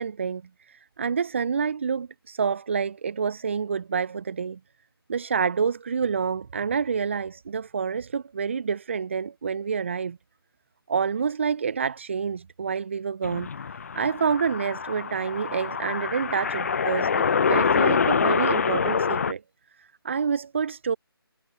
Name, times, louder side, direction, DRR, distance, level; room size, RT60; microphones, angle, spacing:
voice 1, 0.0-4.6 5.1-10.2 10.9-19.4 19.8-21.0, right 6 dB, 30° right, 0.5 m, -28 dB
sound 1, 13.2-19.3, left 6 dB, 35° left, 0.7 m, -25 dB
figure-of-eight pair, 155°, 13 cm